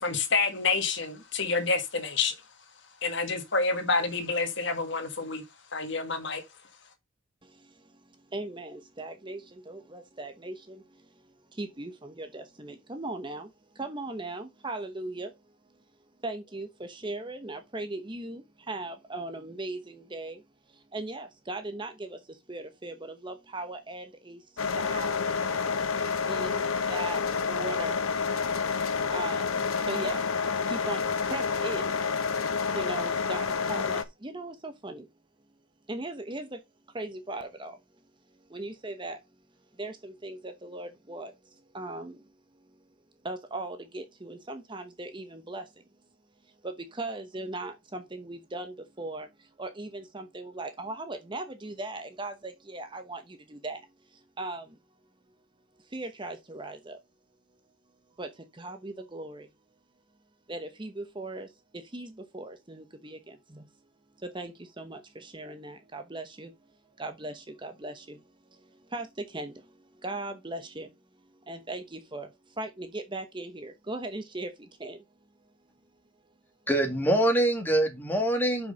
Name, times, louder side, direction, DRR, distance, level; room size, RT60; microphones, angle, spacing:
voice 1, 0.0-2.3 3.0-5.4 5.7-6.4, left 4 dB, 55° left, 1.7 m, -28 dB
voice 2, 7.4-15.8 16.2-27.2 27.5-28.0 29.1-32.0 32.5-35.1 35.9-36.6 36.9-37.8 38.4-39.2 39.7-42.8 43.2-45.8 46.4-53.8 54.1-54.8 55.8-57.0 58.2-59.5 60.5-63.7 64.2-66.5 67.0-70.9 71.2-75.0, right 2 dB, 25° right, 0.9 m, -39 dB
sound 1, 24.6-34.0, left 5 dB, 90° left, 1.0 m, -29 dB
voice 3, 76.7-78.7, right 1 dB, 10° left, 2.0 m, -24 dB
6.1 x 5.8 x 5.4 m
head